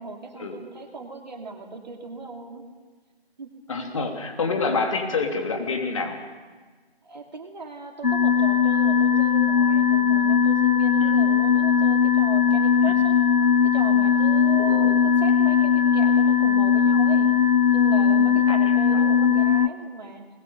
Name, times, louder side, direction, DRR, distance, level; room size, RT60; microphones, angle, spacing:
voice 1, 0.0-2.7 3.4-3.6 7.0-13.2 13.6-17.3 17.7-20.3, right 3 dB, 45° right, 3 dB, 2.6 m, -37 dB
voice 2, 3.7-6.2 11.0-11.1 14.6-14.9 18.5-18.6 18.9-19.0, left 4 dB, 30° left, 3 dB, 3.0 m, -27 dB
sound 1, 8.0-19.7, left 7 dB, 50° left, 0.9 m, -19 dB
26.0 x 21.0 x 6.7 m, 1.4 s
figure-of-eight pair, 155°, 31 cm